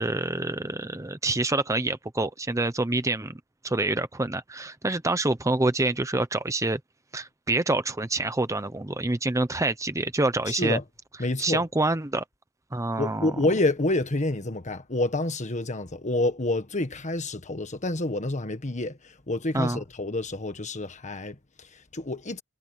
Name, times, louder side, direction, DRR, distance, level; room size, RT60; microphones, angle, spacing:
voice 1, 0.0-3.4 3.6-6.8 7.1-10.8 11.4-12.2 12.7-13.3 19.5-19.8, right 2 dB, 15° right, 0.8 m, -27 dB
voice 2, 10.5-10.8 11.2-11.6 13.0-22.4, left 2 dB, 35° left, 1.6 m, -28 dB
head